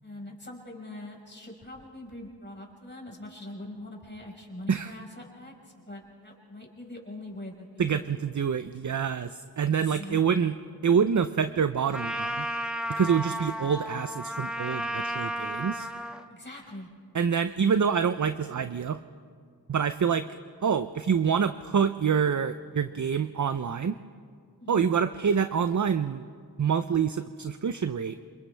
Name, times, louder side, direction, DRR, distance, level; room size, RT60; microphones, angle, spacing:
voice 1, 0.0-8.1 9.6-10.5 16.3-16.9 24.6-24.9, left 1 dB, 25° left, -2 dB, 5.0 m, -43 dB
voice 2, 7.8-10.5 10.8-12.5 12.9-15.9 17.1-19.0 19.7-20.3 20.6-24.0 24.7-26.3 26.6-28.2, right 7 dB, 50° right, 11 dB, 0.6 m, -26 dB
Trumpet, 11.9-16.2, equal, ahead, 1.3 m, -33 dB
29.5 x 27.5 x 3.4 m, 2.3 s
wide cardioid pair, 55°, 40 cm